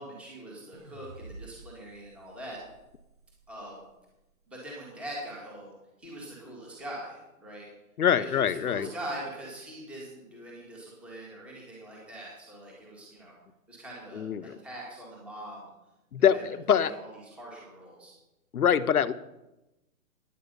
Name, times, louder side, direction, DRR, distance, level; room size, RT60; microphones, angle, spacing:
voice 1, 0.0-2.6 3.5-3.8 4.5-5.7 6.0-7.7 8.2-13.3 13.7-15.7 16.3-16.4 16.7-18.1, right 1 dB, 5° right, -4 dB, 1.7 m, -42 dB
sound 1, 0.7-4.0, right 2 dB, 75° right, 3.4 m, -50 dB
voice 2, 8.0-8.9 14.1-14.6 16.1-16.9 18.5-19.1, left 8 dB, 80° left, 13 dB, 1.1 m, -24 dB
15.5 x 10.5 x 5.4 m, 0.97 s
hypercardioid pair, 175°, 44 cm